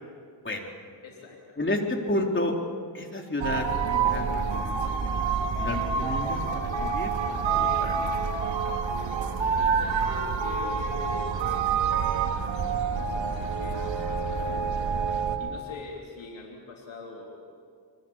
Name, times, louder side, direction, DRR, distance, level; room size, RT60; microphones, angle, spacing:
voice 1, 1.0-1.6 9.5-11.4 12.0-12.6 12.9-15.1 15.4-17.5, left 3 dB, 80° left, -1 dB, 3.7 m, -44 dB
voice 2, 1.6-2.5 2.9-5.1 5.6-8.1, left 1 dB, 25° left, 2 dB, 3.8 m, -31 dB
sound 1, 3.4-15.4, right 5 dB, 75° right, 2.6 m, -27 dB
26.5 x 23.5 x 7.3 m, 2.1 s
cardioid pair, 75°, 45 cm